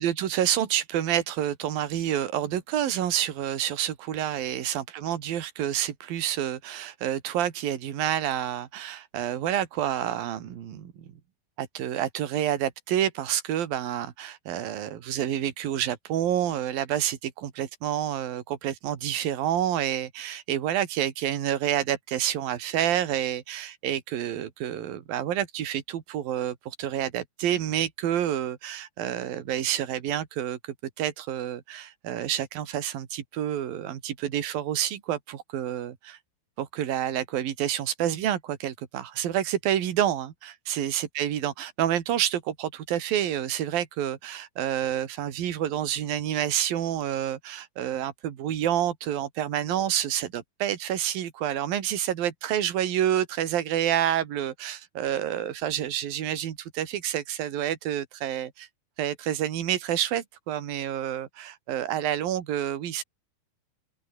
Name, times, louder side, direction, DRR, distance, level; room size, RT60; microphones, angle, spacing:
voice 1, 0.0-10.9 11.6-36.2 36.6-58.7 59.0-63.0, right 11 dB, 65° right, 3.9 m, -28 dB
open air
omnidirectional pair, 4.5 m